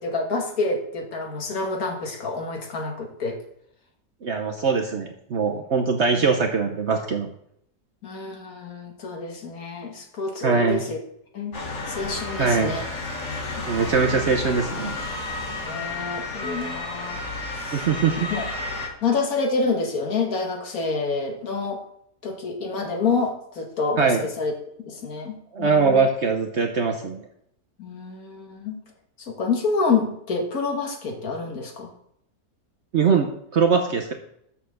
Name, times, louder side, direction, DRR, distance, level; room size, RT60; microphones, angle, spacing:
voice 1, 0.0-3.4 8.0-11.0 11.3-11.6 11.9-12.9 13.6-14.2 15.6-17.3 17.5-17.9 18.3-18.5 19.0-21.8 22.2-24.5 24.9-26.1 27.8-28.8 29.2-31.9, left 4 dB, 60° left, 3 dB, 1.8 m, -28 dB
voice 2, 4.2-7.3 10.4-10.8 12.4-12.7 13.7-15.0 17.7-18.3 24.0-24.3 25.5-27.2 32.9-34.1, right 5 dB, 50° right, 3 dB, 0.9 m, -22 dB
Motor vehicle (road) / Siren, 11.5-18.9, left 2 dB, 45° left, 1.7 m, -32 dB
6.9 x 5.6 x 6.5 m, 0.71 s
omnidirectional pair, 1.8 m